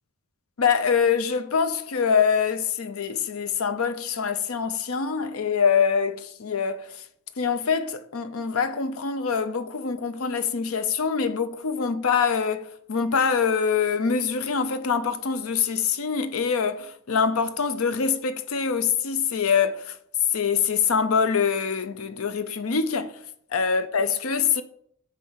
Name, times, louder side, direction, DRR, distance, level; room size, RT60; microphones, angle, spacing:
voice 1, 0.6-6.9 7.4-19.9 20.3-23.1 23.5-24.6, left 6 dB, 70° left, 0.6 m, -24 dB
10.0 x 3.4 x 5.6 m
head